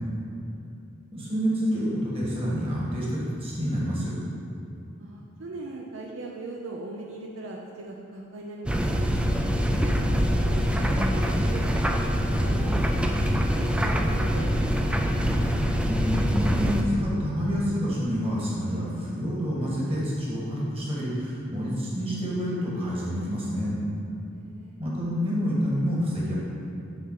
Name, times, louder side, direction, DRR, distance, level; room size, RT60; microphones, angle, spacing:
voice 1, 0.2-0.7 5.0-9.0 9.7-13.0 13.6-15.0 24.3-24.8, right 2 dB, 70° right, -1 dB, 0.6 m, -40 dB
voice 2, 1.1-4.1 15.3-23.8 24.8-26.3, equal, 30° right, -6 dB, 1.7 m, -28 dB
sound 1, 8.7-16.8, equal, 5° right, 0.3 m, -24 dB
7.2 x 3.8 x 5.7 m, 2.6 s
head